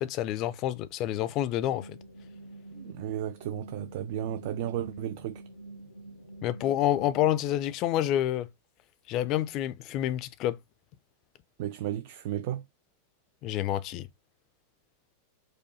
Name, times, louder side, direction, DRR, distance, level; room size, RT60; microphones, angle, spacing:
voice 1, 0.0-2.0 6.4-8.5 9.1-10.6 13.4-14.1, left 12 dB, 40° left, 0.4 m, -28 dB
sound 1, 1.6-7.3, right 2 dB, 85° right, 1.2 m, -47 dB
voice 2, 2.7-5.4 11.6-12.6, right 11 dB, 50° right, 0.3 m, -34 dB
4.8 x 2.1 x 4.1 m
figure-of-eight pair, 90°, 0 cm